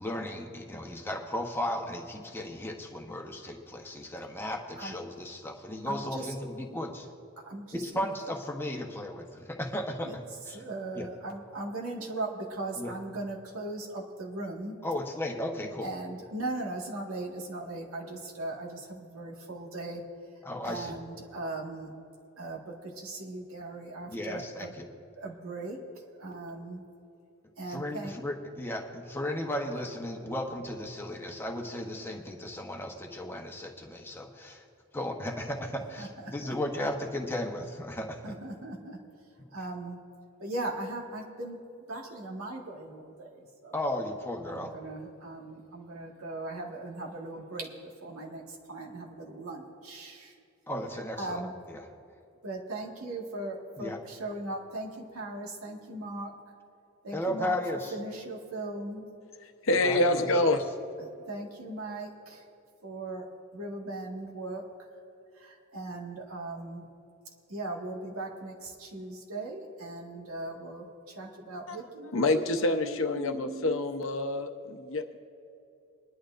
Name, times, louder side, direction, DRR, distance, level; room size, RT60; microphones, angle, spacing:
voice 1, 0.0-7.1 7.7-10.1 10.5-10.6 10.9-11.1 12.8-12.9 14.8-15.9 20.4-21.0 24.1-24.9 27.7-34.6 34.9-38.3 43.7-44.7 50.7-51.8 53.8-54.0 57.1-57.9 59.8-60.4, left 1 dB, 10° left, 1 dB, 1.0 m, -35 dB
voice 2, 5.9-6.3 7.4-8.1 10.0-10.2 10.5-14.8 15.8-20.0 20.6-21.9 22.4-24.7 25.2-25.8 26.2-26.8 27.6-28.1 36.0-36.1 36.4-36.5 38.2-39.0 39.5-40.0 40.4-41.6 41.9-43.8 44.5-50.3 51.2-51.5 52.4-56.3 57.0-57.6 57.9-59.0 61.0-62.4 62.8-63.2 63.5-64.6 65.3-66.8 67.5-73.8, right 2 dB, 90° right, -1 dB, 1.8 m, -39 dB
voice 3, 59.6-60.6 71.7-71.8 72.1-75.2, left 2 dB, 65° left, 6 dB, 0.8 m, -27 dB
22.0 x 11.5 x 2.6 m, 2.6 s
head